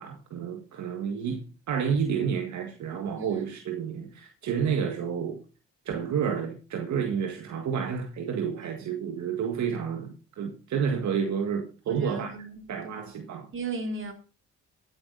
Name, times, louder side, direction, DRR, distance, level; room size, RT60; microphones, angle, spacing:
voice 1, 0.0-5.4 5.9-12.3 12.7-13.5, right 7 dB, 70° right, 1.8 m, -30 dB
voice 2, 11.9-12.9 13.5-14.1, right 3 dB, 40° right, 3.2 m, -36 dB
13.5 x 8.6 x 4.0 m
cardioid pair, 90°, 30 cm